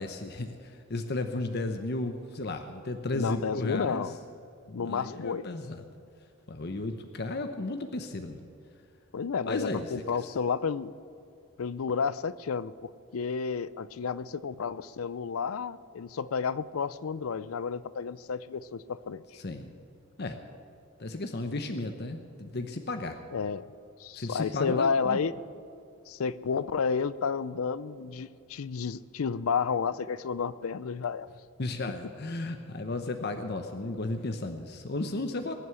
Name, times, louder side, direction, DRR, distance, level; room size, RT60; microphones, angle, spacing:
voice 1, 0.0-4.1 4.7-5.8 6.5-8.4 9.5-10.3 19.3-19.7 20.2-20.4 21.0-23.2 24.1-25.2 31.6-35.5, left 2 dB, 50° left, 6 dB, 0.8 m, -34 dB
voice 2, 3.1-4.2 4.7-5.4 9.1-10.9 11.6-19.2 23.3-23.7 24.0-25.3 26.1-31.3, left 5 dB, 85° left, 17 dB, 0.5 m, -31 dB
21.0 x 7.9 x 8.3 m, 2.5 s
head